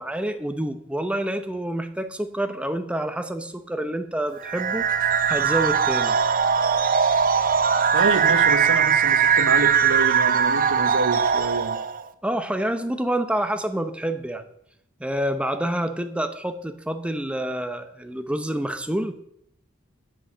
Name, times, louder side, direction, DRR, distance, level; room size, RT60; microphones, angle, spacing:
voice 1, 0.0-6.2 12.2-14.4 15.0-19.1, right 1 dB, 5° right, 9 dB, 0.7 m, -28 dB
sound 1, 4.4-12.0, right 6 dB, 40° right, 0.6 m, -20 dB
voice 2, 7.9-11.8, right 3 dB, 80° right, 9 dB, 1.2 m, -27 dB
9.6 x 6.3 x 7.3 m, 0.74 s
head